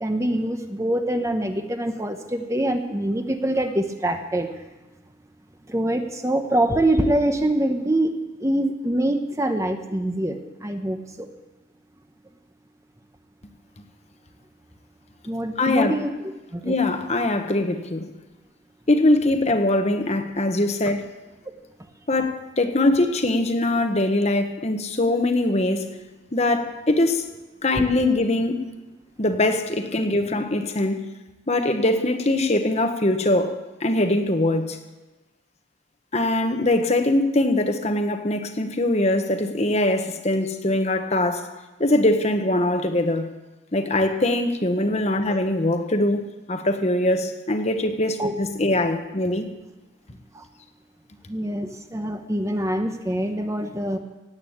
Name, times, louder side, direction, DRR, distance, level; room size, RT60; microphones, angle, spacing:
voice 1, 0.0-4.5 5.7-11.3 15.3-16.7 48.2-48.3 50.3-50.4 51.3-54.0, right 1 dB, 15° right, 0.8 m, -25 dB
voice 2, 15.6-15.9 16.6-18.1 18.9-21.1 22.1-25.9 26.3-27.3 27.6-28.6 29.2-31.1 31.5-34.8 36.1-41.5 41.8-43.3 43.7-49.5, left 1 dB, 30° left, 1.1 m, -22 dB
17.5 x 8.5 x 8.7 m
head